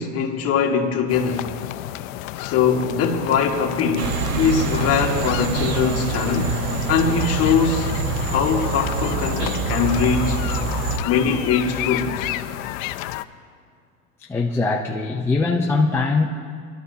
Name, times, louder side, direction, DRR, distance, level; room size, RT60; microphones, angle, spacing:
voice 1, 0.0-1.5 2.4-6.5 6.9-7.9 8.3-10.4 11.0-12.4, left 6 dB, 35° left, 1.7 m, -22 dB
sound 1, 1.1-13.2, left 15 dB, 70° left, 0.6 m, -31 dB
sound 2, 4.0-11.0, right 4 dB, 90° right, 1.2 m, -25 dB
voice 2, 14.3-16.3, left 3 dB, 5° left, 0.6 m, -21 dB
24.0 x 12.5 x 2.7 m
supercardioid pair, 130°, 42 cm